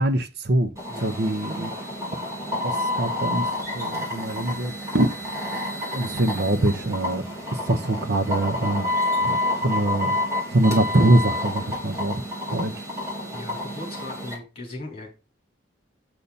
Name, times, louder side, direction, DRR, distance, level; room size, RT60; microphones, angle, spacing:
voice 1, 0.0-0.7 1.0-1.7 2.6-3.5 3.7-5.1 5.9-7.2 7.5-8.9 9.2-9.4 9.6-10.2 10.5-12.2 12.5-12.7, right 1 dB, 60° right, 1.0 m, -23 dB
sound 1, 0.8-14.3, left 1 dB, 15° right, 3.7 m, -29 dB
voice 2, 13.3-15.1, left 2 dB, 30° left, 4.2 m, -38 dB
8.4 x 6.9 x 4.2 m
head